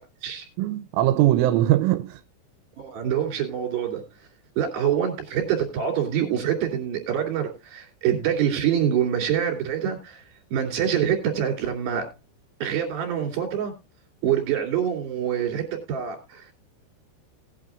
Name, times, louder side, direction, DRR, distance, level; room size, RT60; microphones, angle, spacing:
voice 1, 0.6-2.2, right 14 dB, 85° right, 3.2 m, -21 dB
voice 2, 2.8-4.0 4.6-10.2 10.5-12.0 12.6-13.7 14.2-16.5, right 9 dB, 55° right, 4.3 m, -25 dB
18.5 x 9.0 x 2.5 m
omnidirectional pair, 5.6 m